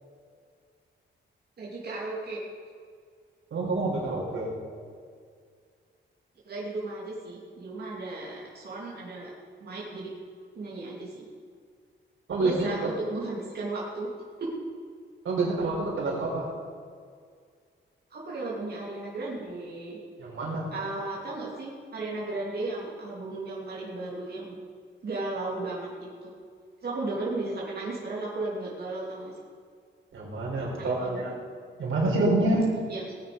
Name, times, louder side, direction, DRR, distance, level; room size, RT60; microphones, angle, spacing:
voice 1, 1.6-2.4 4.4-4.8 6.4-9.3 9.6-10.1 10.5-11.3 12.4-14.1 14.4-14.5 18.1-20.0 20.7-24.6 25.0-26.3 26.8-29.3 30.6-31.2 32.9-33.0, right 2 dB, 50° right, -5 dB, 3.0 m, -35 dB
voice 2, 3.5-4.5 12.3-12.9 15.2-16.5 20.2-20.7 30.1-31.3 31.8-32.7, right 2 dB, 90° right, -3 dB, 4.4 m, -27 dB
18.5 x 9.4 x 5.3 m, 2.1 s
wide cardioid pair, 145°, 20 cm